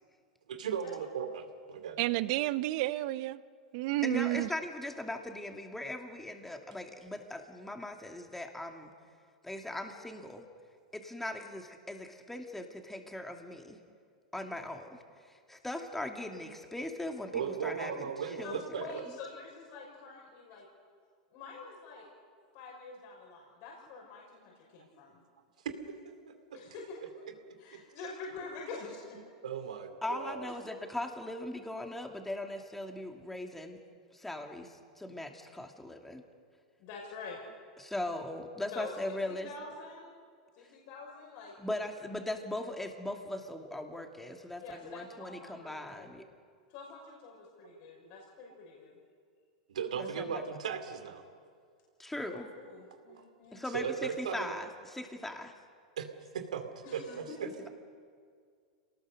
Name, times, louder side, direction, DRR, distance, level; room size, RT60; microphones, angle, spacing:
voice 1, 0.5-2.0 17.3-19.1 25.6-26.6 27.5-27.8 29.4-30.5 49.7-51.2 53.1-53.3 53.7-54.6 56.0-56.1 56.3-57.5, right 7 dB, 80° right, 7 dB, 2.5 m, -37 dB
voice 2, 2.0-3.4 3.7-4.5, right 18 dB, 55° right, 16 dB, 0.8 m, -30 dB
voice 3, 4.0-8.9 9.4-10.5 10.9-13.8 14.3-18.8 30.0-33.8 34.1-36.2 37.8-39.5 41.6-46.2 50.0-50.4 52.0-52.5 53.5-55.5, left 1 dB, 5° left, 3 dB, 2.7 m, -39 dB
voice 4, 18.4-20.7 21.3-22.0 22.5-25.2 26.5-27.0 27.6-29.2 36.8-37.4 38.7-40.2 40.5-41.5 44.6-46.2 46.7-49.0 52.2-53.6 56.8-57.4, left 4 dB, 55° left, -2 dB, 6.1 m, -46 dB
28.0 x 19.0 x 6.7 m, 2.1 s
hypercardioid pair, 100°, 4 cm